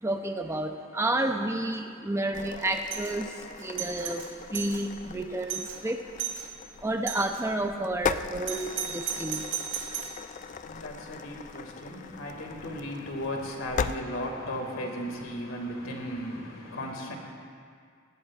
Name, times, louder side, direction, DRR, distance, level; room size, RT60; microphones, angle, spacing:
voice 1, 0.0-6.0 6.8-9.5, right 1 dB, 15° right, 5 dB, 0.6 m, -30 dB
sound 1, 2.3-14.0, left 6 dB, 35° left, 0.3 m, -39 dB
Doorbell, 2.8-3.1 3.6-4.8 5.2-5.3 5.5-5.8 6.2-6.5 7.1-7.4 8.5-10.2, right 9 dB, 60° right, 1.8 m, -35 dB
voice 2, 10.3-17.2, equal, 80° left, 1 dB, 2.2 m, -36 dB
19.0 x 16.5 x 2.5 m, 2.2 s
head